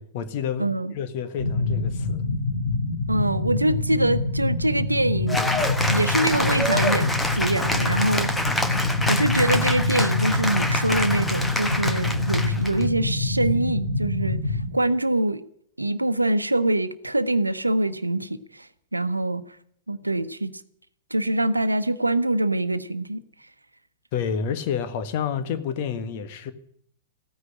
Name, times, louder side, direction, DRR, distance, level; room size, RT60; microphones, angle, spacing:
voice 1, 0.0-2.2 24.1-26.5, left 7 dB, 45° left, 1.5 m, -29 dB
voice 2, 0.6-0.9 3.1-5.6 5.9-8.3 8.8-15.4 15.8-19.6 19.9-20.5 21.1-23.2, right 1 dB, 85° right, 1.0 m, -24 dB
sound 1, 1.4-14.7, left 3 dB, 75° left, 2.5 m, -26 dB
Cheering / Applause, 5.3-12.8, left 1 dB, 5° left, 1.2 m, -27 dB
15.0 x 9.8 x 9.9 m
figure-of-eight pair, 100°, 0 cm